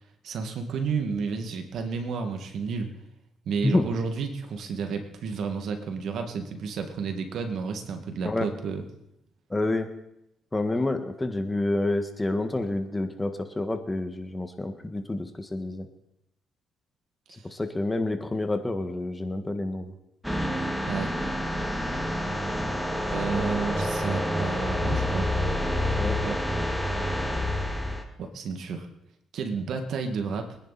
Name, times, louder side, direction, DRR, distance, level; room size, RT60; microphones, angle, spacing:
voice 1, 0.2-2.9 3.5-8.8 17.3-17.4 20.9-21.1 23.1-25.3 26.2-26.4 28.2-28.9 29.3-30.6, right 5 dB, 70° right, 5 dB, 2.2 m, -31 dB
voice 2, 9.5-9.9 10.5-15.9 17.3-19.9 26.0-26.2, left 2 dB, 15° left, 7 dB, 1.7 m, -28 dB
sound 1, 20.2-28.0, left 1 dB, ahead, 2.1 m, -28 dB
24.0 x 10.5 x 4.3 m, 0.82 s
cardioid pair, 90°, 0 cm